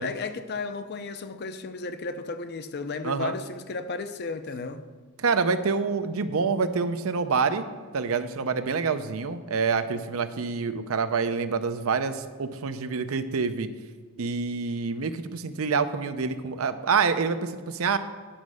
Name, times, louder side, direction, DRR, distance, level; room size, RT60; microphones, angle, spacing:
voice 1, 0.0-4.9, left 4 dB, 50° left, 0.6 m, -34 dB
voice 2, 5.2-7.7 7.9-13.7 14.2-18.0, right 5 dB, 75° right, 0.6 m, -27 dB
10.0 x 5.2 x 6.2 m
head